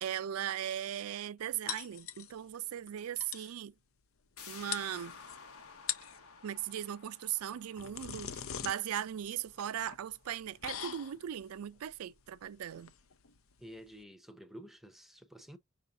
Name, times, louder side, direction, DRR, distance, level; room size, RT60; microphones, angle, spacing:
voice 1, 0.0-3.7 4.5-5.2 6.4-12.9, right 10 dB, 85° right, 0.4 m, -38 dB
sound 1, 1.7-2.6 2.9-3.0 3.2-3.5 4.4-4.5 4.7-5.4 5.7-6.2 7.4-14.0, left 9 dB, 70° left, 0.6 m, -43 dB
sound 2, 4.4-9.8 10.2-10.3, left 5 dB, 85° left, 1.2 m, -53 dB
voice 2, 13.6-15.6, equal, ahead, 0.7 m, -51 dB
5.5 x 2.6 x 3.6 m
head